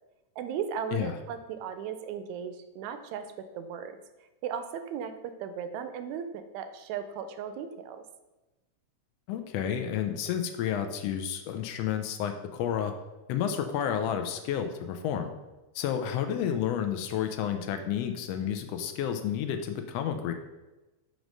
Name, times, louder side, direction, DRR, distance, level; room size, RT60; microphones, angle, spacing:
voice 1, 0.4-3.3 3.5-4.0 4.4-8.0, right 7 dB, 80° right, 9 dB, 1.8 m, -36 dB
voice 2, 9.3-12.9 13.3-15.3 15.7-20.3, left 9 dB, 80° left, 6 dB, 1.4 m, -31 dB
6.2 x 3.1 x 5.2 m, 1.1 s
omnidirectional pair, 3.3 m